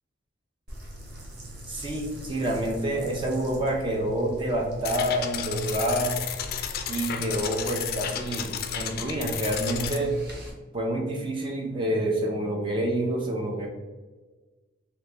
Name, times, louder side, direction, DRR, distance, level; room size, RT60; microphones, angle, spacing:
sound 1, 0.7-10.5, equal, 55° right, 0.9 m, -42 dB
voice 1, 1.7-6.2 6.9-10.2 10.7-13.7, right 1 dB, 25° right, 0 dB, 0.4 m, -28 dB
sound 2, 4.8-10.0, left 8 dB, 50° left, 0.3 m, -33 dB
2.9 x 2.9 x 3.3 m, 1.3 s
head